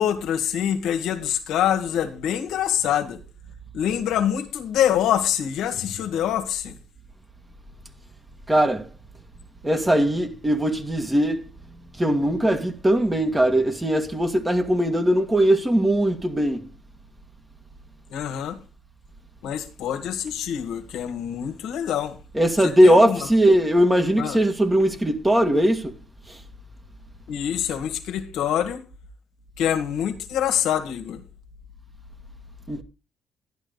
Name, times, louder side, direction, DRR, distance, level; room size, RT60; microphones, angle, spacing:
voice 1, 0.0-3.2 3.7-6.7 18.1-18.6 19.4-22.1 22.6-23.2 24.2-24.4 27.3-28.8 29.6-31.2, left 10 dB, 85° left, 1.7 m, -25 dB
voice 2, 8.5-8.9 9.6-11.4 12.0-16.6 22.3-25.9 32.7-32.8, right 1 dB, 15° right, 2.0 m, -20 dB
11.5 x 11.0 x 4.0 m
cardioid pair, 90°, 0 cm